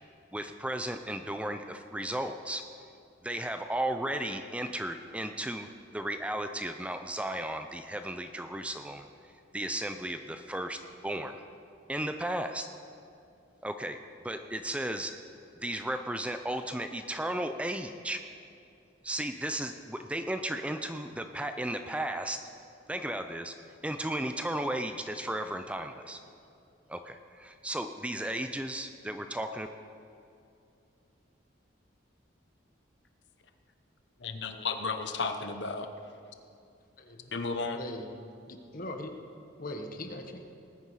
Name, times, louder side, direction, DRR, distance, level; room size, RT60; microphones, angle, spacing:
voice 1, 0.3-2.6 3.2-11.4 11.9-12.7 13.6-14.0 14.2-15.1 15.6-18.2 19.0-22.4 22.9-23.5 23.8-26.2 26.9-29.7, right 1 dB, 5° right, 7 dB, 0.4 m, -35 dB
voice 2, 34.2-35.9 37.3-37.8, left 4 dB, 65° left, 7 dB, 0.9 m, -33 dB
voice 3, 37.0-37.3 37.7-38.1 38.5-39.1 39.6-40.4, left 1 dB, 50° left, 5 dB, 1.2 m, -40 dB
19.5 x 9.4 x 4.8 m, 2.6 s
head